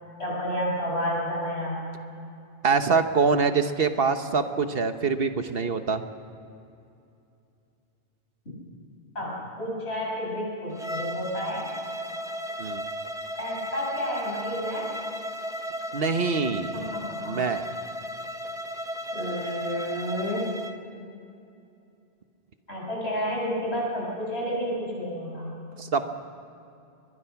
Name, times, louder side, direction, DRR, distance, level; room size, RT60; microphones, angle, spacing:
voice 1, 0.2-1.8 9.1-11.7 13.4-14.9 16.7-17.4 19.1-20.5 22.7-25.5, equal, 90° left, -4 dB, 8.0 m, -30 dB
voice 2, 2.6-6.0 12.6-12.8 15.9-16.7 17.2-17.6 25.8-26.1, right 5 dB, 65° right, 8 dB, 1.3 m, -24 dB
Bowed string instrument, 10.7-20.8, equal, 5° right, 0.8 m, -35 dB
23.5 x 21.5 x 5.9 m, 2.6 s
omnidirectional pair, 1.1 m